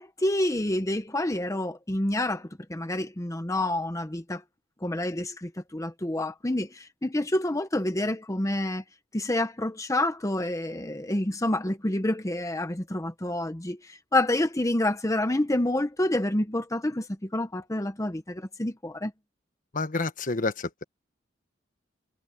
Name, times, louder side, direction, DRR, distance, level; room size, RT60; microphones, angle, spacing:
voice 1, 0.0-4.4 4.8-8.8 9.1-19.1, left 1 dB, 15° left, 0.9 m, -28 dB
voice 2, 19.7-20.8, left 3 dB, 45° left, 1.2 m, -29 dB
head